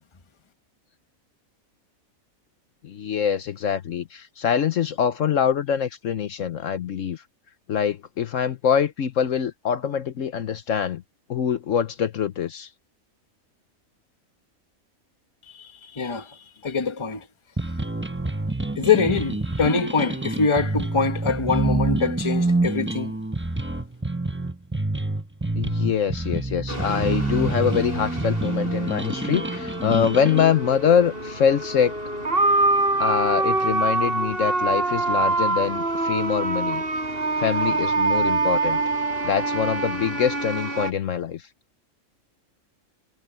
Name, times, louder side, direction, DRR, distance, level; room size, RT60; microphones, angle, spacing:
voice 1, 2.8-7.2 7.7-11.0 11.3-12.7 25.6-31.9 33.0-36.8 37.4-38.8 39.2-41.4, left 8 dB, 65° left, 1.2 m, -24 dB
voice 2, 15.5-17.3 18.8-23.1, left 5 dB, 25° left, 1.1 m, -24 dB
sound 1, 17.6-30.5, right 2 dB, 10° right, 0.8 m, -27 dB
sound 2, 26.7-40.9, right 2 dB, 40° right, 6.5 m, -25 dB
omnidirectional pair, 1.5 m